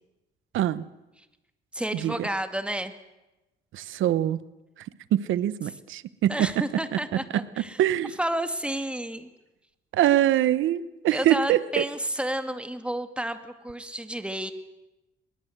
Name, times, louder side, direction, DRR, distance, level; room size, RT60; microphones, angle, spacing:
voice 1, 0.5-0.8 1.9-2.3 3.7-4.4 5.1-6.5 7.1-8.1 9.9-11.8, right 12 dB, 80° right, 16 dB, 1.0 m, -24 dB
voice 2, 1.7-2.9 6.3-7.8 8.2-9.3 11.1-14.5, right 1 dB, 5° right, 8 dB, 2.2 m, -31 dB
23.0 x 21.0 x 8.0 m, 0.99 s
cardioid pair, 90°, 20 cm